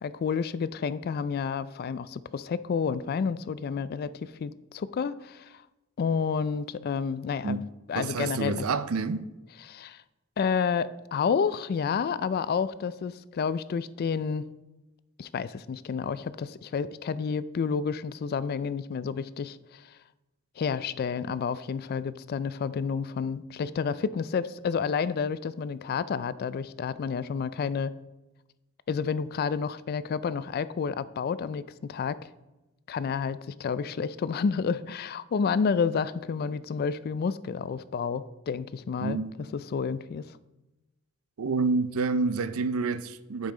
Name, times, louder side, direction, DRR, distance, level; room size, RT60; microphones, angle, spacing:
voice 1, 0.0-5.6 6.0-7.6 7.9-8.7 9.6-10.0 10.4-14.5 15.2-19.9 20.6-27.9 28.9-32.2 32.9-39.2 39.5-40.3, left 6 dB, 45° left, 0.3 m, -30 dB
voice 2, 7.9-9.3 39.0-39.5 41.4-43.5, right 4 dB, 80° right, 0.5 m, -28 dB
10.0 x 5.5 x 3.8 m
head